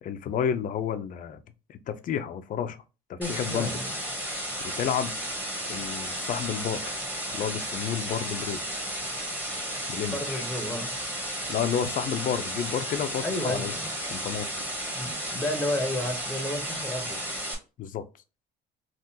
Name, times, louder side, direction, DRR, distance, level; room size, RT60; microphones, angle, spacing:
voice 1, 0.0-1.4 1.7-2.8 3.1-3.8 4.6-5.1 5.6-7.0 7.3-8.6 9.9-10.4 11.5-13.7 14.1-14.6 17.8-18.0, left 8 dB, 55° left, 0.5 m, -31 dB
voice 2, 3.2-4.0 10.1-10.9 13.2-13.9 14.9-17.2, left 1 dB, 5° left, 0.8 m, -32 dB
sound 1, 3.2-17.5, equal, 10° right, 1.1 m, -33 dB
3.6 x 2.4 x 2.7 m
cardioid pair, 110°, 17 cm